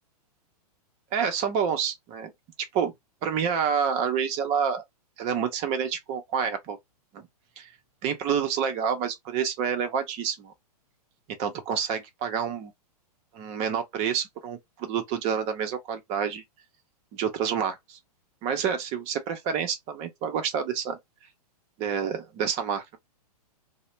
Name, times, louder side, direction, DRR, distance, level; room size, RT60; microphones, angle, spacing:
voice 1, 1.1-2.3 2.7-2.9 3.2-4.8 5.2-6.8 7.1-7.3 7.6-7.7 8.0-10.5 11.4-12.7 13.3-16.4 17.1-18.0 18.4-21.0 21.8-22.8, right 7 dB, 35° right, 0.7 m, -28 dB
2.4 x 2.1 x 3.0 m
hypercardioid pair, 125°, 20 cm